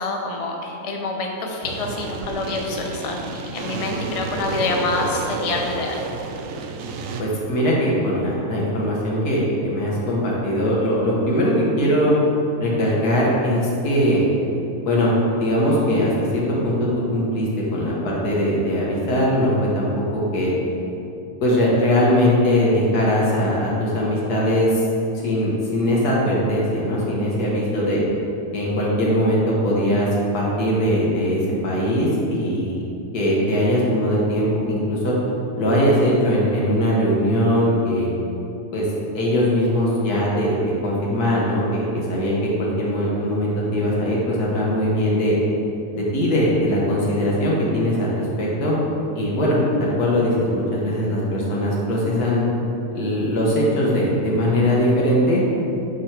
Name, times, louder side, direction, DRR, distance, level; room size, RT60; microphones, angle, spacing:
voice 1, 0.0-6.0, left 3 dB, 40° left, 1 dB, 0.5 m, -27 dB
sound 1, 1.6-7.2, right 4 dB, 70° right, 0.9 m, -30 dB
voice 2, 7.2-12.1 12.6-14.2 14.8-15.1 15.4-20.5 21.4-24.8 25.2-28.0 28.5-30.1 30.3-32.8 33.1-35.2 35.6-38.1 38.7-38.9 39.1-40.6 40.8-45.4 45.9-48.7 49.2-52.4 52.9-55.4, equal, 90° left, -4 dB, 1.9 m, -20 dB
7.1 x 5.0 x 4.5 m, 2.8 s
omnidirectional pair, 1.6 m